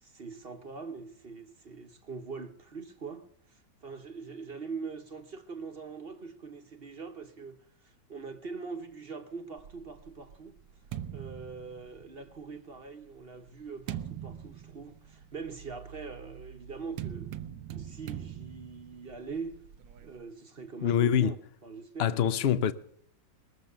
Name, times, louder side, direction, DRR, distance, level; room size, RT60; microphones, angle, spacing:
voice 1, 0.0-10.6 11.1-17.3 17.7-19.6 20.0-21.4 21.6-22.1, right 4 dB, 40° right, 1.1 m, -42 dB
sound 1, 9.6-12.4 13.1-20.2, right 10 dB, 85° right, 1.5 m, -43 dB
voice 2, 20.8-21.3 22.0-22.7, left 9 dB, 60° left, 0.6 m, -25 dB
21.0 x 7.5 x 6.6 m
omnidirectional pair, 2.0 m